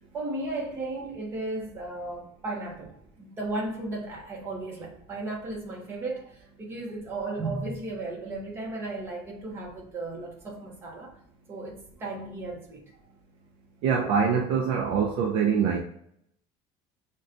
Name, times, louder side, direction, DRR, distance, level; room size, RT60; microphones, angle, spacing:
voice 1, 0.1-11.1 11.5-12.9, right 2 dB, 20° right, -2 dB, 0.8 m, -35 dB
voice 2, 13.8-15.8, right 6 dB, 50° right, 1 dB, 0.4 m, -24 dB
6.1 x 2.2 x 2.5 m, 0.70 s
cardioid pair, 180°, 12 cm